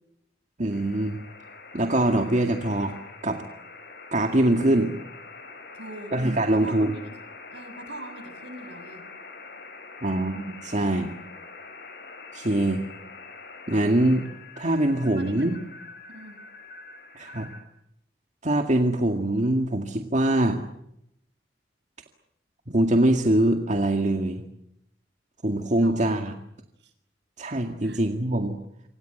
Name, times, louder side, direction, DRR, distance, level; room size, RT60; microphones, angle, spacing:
voice 1, 0.6-1.2 1.7-2.9 3.2-3.4 4.1-4.9 6.1-6.9 10.0-11.1 12.3-12.8 13.7-14.3 14.6-15.6 17.2-17.5 18.4-20.6 22.7-24.4 25.4-26.3 27.4-28.6, right 1 dB, 40° right, 4 dB, 2.1 m, -23 dB
sound 1, 0.7-17.6, left 4 dB, 60° left, 8.0 m, -44 dB
voice 2, 5.7-6.1 6.5-7.1 7.5-9.0 15.2-15.7 16.1-16.4 25.8-26.1 26.8-26.9 27.8-28.0, right 1 dB, 75° right, 9 dB, 6.9 m, -41 dB
27.5 x 26.0 x 8.0 m, 0.79 s
head